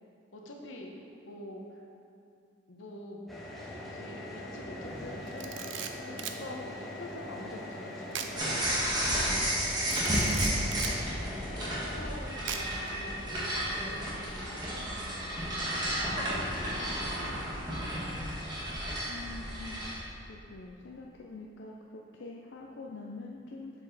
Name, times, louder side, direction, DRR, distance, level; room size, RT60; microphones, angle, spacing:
voice 1, 0.3-1.8 2.7-3.2 3.8-10.6 11.2-15.3 15.6-16.2 16.6-17.8, left 1 dB, 80° left, 0 dB, 0.9 m, -46 dB
sound 1, 3.3-12.0, left 1 dB, ahead, 0.9 m, -42 dB
Camera, 5.3-6.4 8.1-8.4 8.7-8.9 9.9-11.0 12.5-12.9, right 8 dB, 70° right, 0.4 m, -39 dB
sound 2, 8.4-19.9, right 1 dB, 20° right, 1.4 m, -32 dB
voice 2, 19.1-19.9 20.3-23.7, left 3 dB, 65° left, -2 dB, 0.4 m, -45 dB
7.0 x 5.2 x 4.0 m, 2.4 s
head